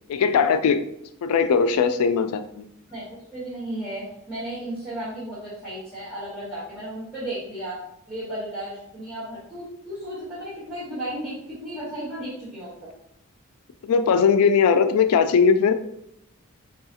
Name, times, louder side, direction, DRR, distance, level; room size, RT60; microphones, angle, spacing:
voice 1, 0.1-0.9 1.2-2.7 13.9-15.7, left 6 dB, 90° left, 10 dB, 0.3 m, -19 dB
voice 2, 2.9-7.8 8.1-12.7, right 1 dB, 5° right, -13 dB, 1.4 m, -34 dB
4.7 x 2.3 x 2.8 m, 0.76 s
head